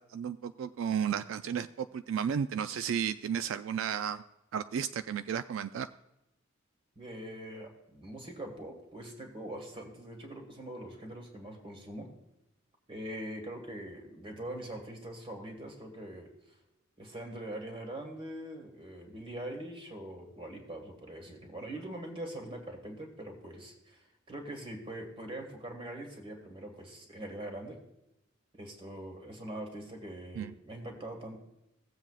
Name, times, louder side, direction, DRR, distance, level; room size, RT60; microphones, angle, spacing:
voice 1, 0.1-4.2 4.5-5.9 30.4-30.5, right 8 dB, 80° right, 11 dB, 0.3 m, -33 dB
voice 2, 7.0-12.1 12.9-16.6 17.0-27.8 28.5-31.4, right 1 dB, 30° right, 2 dB, 1.8 m, -43 dB
17.0 x 7.6 x 2.4 m, 0.90 s
head